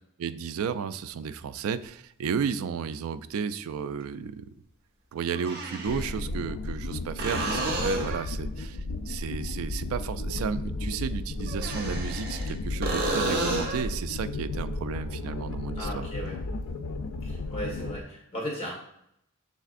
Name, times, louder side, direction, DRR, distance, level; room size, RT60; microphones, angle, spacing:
voice 1, 0.2-4.5 5.1-16.1, right 6 dB, 75° right, 13 dB, 0.3 m, -33 dB
sound 1, 1.8-1.9 4.0-4.1 5.3-6.1 7.2-8.3 11.5-12.5 12.8-13.9 17.5-17.6, right 2 dB, 50° right, 1.1 m, -31 dB
sound 2, 5.9-18.0, left 2 dB, 75° left, 0.4 m, -34 dB
voice 2, 15.8-16.4 17.2-18.7, equal, 30° left, -2 dB, 1.5 m, -36 dB
6.3 x 3.3 x 2.5 m, 0.74 s
head